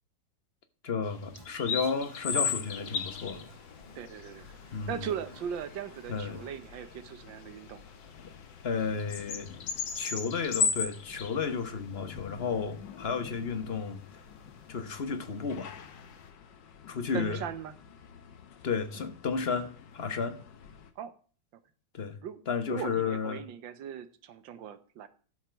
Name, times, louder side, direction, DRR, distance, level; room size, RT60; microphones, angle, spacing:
voice 1, 0.8-3.5 4.7-5.1 6.1-6.4 8.6-9.5 9.9-14.0 14.7-15.7 16.9-17.4 18.6-20.4 21.9-22.2 22.5-23.4, left 5 dB, 40° left, 9 dB, 1.1 m, -32 dB
sound 1, 1.1-16.3, left 5 dB, 90° left, 2.1 m, -36 dB
Toilet flush, 1.3-8.5, left 1 dB, 15° left, 4.8 m, -56 dB
sound 2, 2.3-20.9, left 7 dB, 70° left, 1.6 m, -51 dB
voice 2, 4.0-4.5 4.9-7.8 17.1-17.7 21.0-21.1 22.2-22.4 22.7-25.1, right 8 dB, 85° right, 12 dB, 1.7 m, -38 dB
12.0 x 7.3 x 4.6 m, 0.41 s
omnidirectional pair, 2.0 m